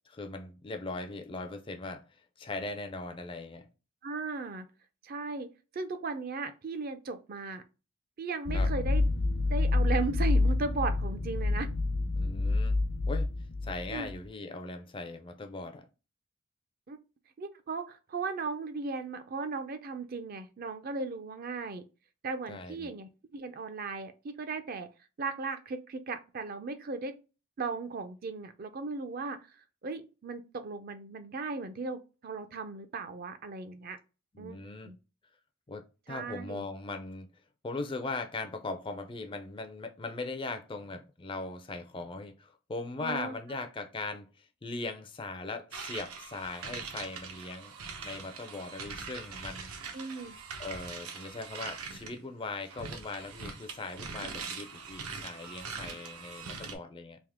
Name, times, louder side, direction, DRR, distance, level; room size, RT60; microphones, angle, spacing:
voice 1, 0.1-3.7 8.5-8.7 12.2-12.8 13.1-13.3 13.6-15.8 22.5-22.9 34.3-34.9 35.7-37.3 37.6-47.7 48.0-49.7 50.6-57.2, left 3 dB, 25° left, 0.4 m, -39 dB
voice 2, 4.0-4.7 5.0-7.6 8.2-9.0 9.5-11.7 13.9-14.1 16.9-17.0 17.4-21.8 22.2-24.9 25.2-27.2 27.6-34.0 34.4-34.6 34.8-35.0 36.1-36.7 43.0-43.3 49.9-50.4, right 4 dB, 40° right, 0.4 m, -37 dB
sound 1, 8.5-14.1, left 2 dB, 70° left, 0.6 m, -28 dB
sound 2, 45.7-52.2 52.6-56.7, right 5 dB, 85° right, 0.8 m, -42 dB
3.5 x 2.7 x 3.5 m
head